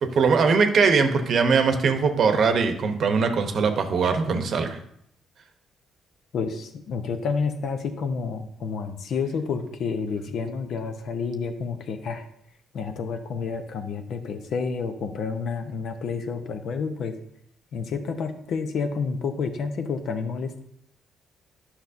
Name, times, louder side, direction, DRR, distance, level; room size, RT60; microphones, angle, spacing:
voice 1, 0.0-4.8, right 5 dB, 60° right, 7 dB, 0.8 m, -21 dB
voice 2, 6.3-12.3 12.7-17.2 17.7-20.6, left 5 dB, 70° left, 7 dB, 0.8 m, -29 dB
9.9 x 5.9 x 2.7 m, 0.70 s
cardioid pair, 90°, 0 cm